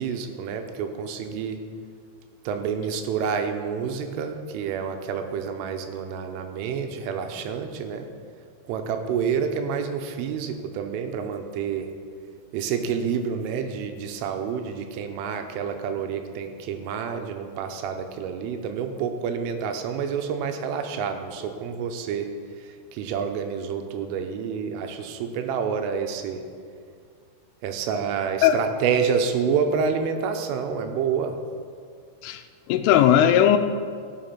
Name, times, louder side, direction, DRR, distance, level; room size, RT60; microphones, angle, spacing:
voice 1, 0.0-1.6 2.5-8.1 8.7-11.9 12.5-22.3 22.6-26.4 27.6-31.4, right 6 dB, 85° right, 6 dB, 3.4 m, -28 dB
voice 2, 32.7-33.6, left 10 dB, 85° left, 8 dB, 3.2 m, -17 dB
17.0 x 6.9 x 5.9 m, 2.1 s
omnidirectional pair, 5.7 m